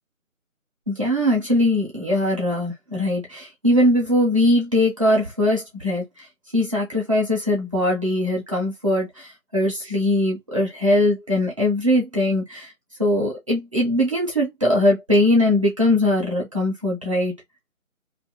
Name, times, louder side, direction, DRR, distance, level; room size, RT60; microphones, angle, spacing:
voice 1, 0.9-6.3 6.5-12.7 13.0-17.3, left 1 dB, 25° right, 0.8 m, -21 dB
2.8 x 2.7 x 2.8 m
figure-of-eight pair, 150°, 42 cm